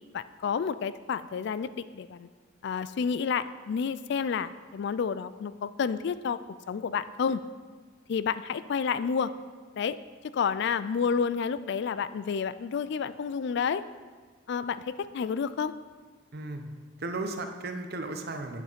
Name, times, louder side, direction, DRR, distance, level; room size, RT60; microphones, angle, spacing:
voice 1, 0.1-2.3 2.6-6.4 6.7-7.4 8.1-9.3 9.8-10.0 10.3-13.8 14.5-14.8 15.1-15.7, left 6 dB, 60° left, 15 dB, 0.3 m, -30 dB
voice 2, 16.3-16.7 17.0-18.6, right 2 dB, 55° right, 6 dB, 0.8 m, -35 dB
8.7 x 6.7 x 5.1 m, 1.4 s
head